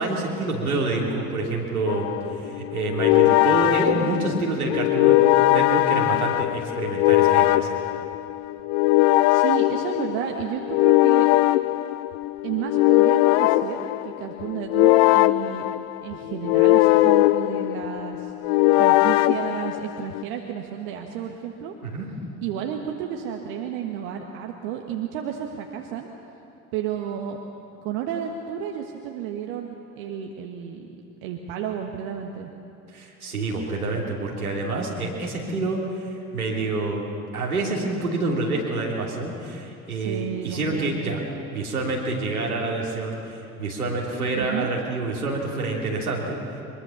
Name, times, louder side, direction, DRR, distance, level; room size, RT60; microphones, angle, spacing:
voice 1, 0.0-2.1 2.4-7.8 21.8-22.1 32.9-37.1 37.3-41.2 41.5-46.4, right 2 dB, 85° right, -2 dB, 3.1 m, -27 dB
sound 1, 1.9-20.2, left 18 dB, 60° left, 0.6 m, -20 dB
voice 2, 9.3-11.3 12.4-15.7 16.0-21.7 22.4-26.1 26.7-27.4 27.8-30.9 31.2-32.5 39.9-41.2 44.3-44.7, right 9 dB, 65° right, 2 dB, 1.6 m, -32 dB
23.5 x 22.0 x 7.2 m, 2.8 s
figure-of-eight pair, 60°, 43 cm